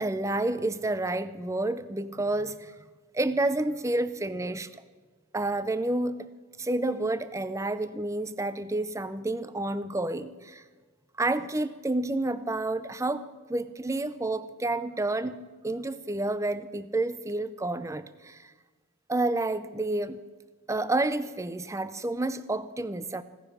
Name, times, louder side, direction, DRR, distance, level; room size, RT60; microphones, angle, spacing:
voice 1, 0.0-2.7 3.1-4.8 5.3-6.3 6.6-10.6 11.2-18.5 19.1-20.2 20.7-23.2, right 2 dB, 15° right, 14 dB, 0.5 m, -29 dB
16.5 x 10.0 x 6.6 m, 1.4 s
head